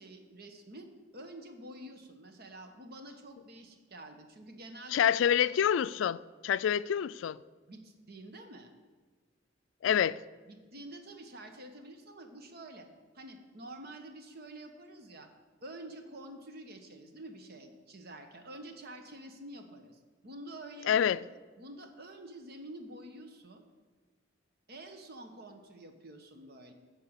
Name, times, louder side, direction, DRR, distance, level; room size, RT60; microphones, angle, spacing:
voice 1, 0.0-5.0 7.7-8.7 9.8-10.0 10.5-12.9 13.1-15.3 15.6-21.0 21.6-23.6 24.7-26.7, right 1 dB, 55° right, 1.2 m, -48 dB
voice 2, 4.9-7.4 9.8-10.1 20.9-21.2, left 9 dB, 90° left, 0.3 m, -27 dB
14.0 x 4.7 x 6.6 m
head